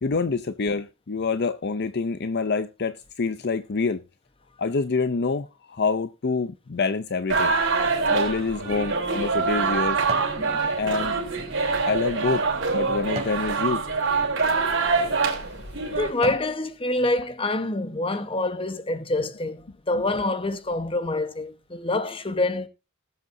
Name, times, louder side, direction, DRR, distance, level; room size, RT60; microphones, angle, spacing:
voice 1, 0.0-4.0 4.6-7.5 8.1-10.0 10.8-11.1 11.9-12.4 12.7-13.8, left 4 dB, 50° left, 0.5 m, -26 dB
sound 1, 7.3-16.1, right 4 dB, 60° right, 3.5 m, -25 dB
sound 2, 10.0-10.4 10.9-13.5 14.1-14.3 15.0-15.2 15.7-16.6 17.0-17.1, right 2 dB, 30° right, 2.9 m, -39 dB
voice 2, 10.4-10.7 15.9-22.7, left 2 dB, 25° left, 1.0 m, -26 dB
19.5 x 8.0 x 2.7 m
head